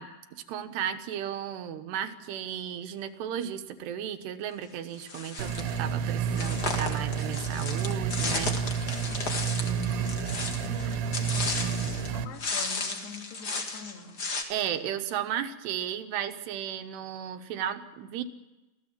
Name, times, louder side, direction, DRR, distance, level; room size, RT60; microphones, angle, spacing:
voice 1, 0.0-8.6 14.5-18.2, right 10 dB, 90° right, 8 dB, 3.2 m, -34 dB
sound 1, 5.0-5.8 6.3-12.1 12.4-14.4, left 3 dB, 50° left, 1.2 m, -34 dB
sound 2, 5.4-12.2, right 7 dB, 70° right, 2.7 m, -30 dB
voice 2, 9.1-10.0 10.6-14.2, left 5 dB, 85° left, 4 dB, 4.1 m, -45 dB
25.5 x 15.5 x 7.4 m, 1.1 s
omnidirectional pair, 4.6 m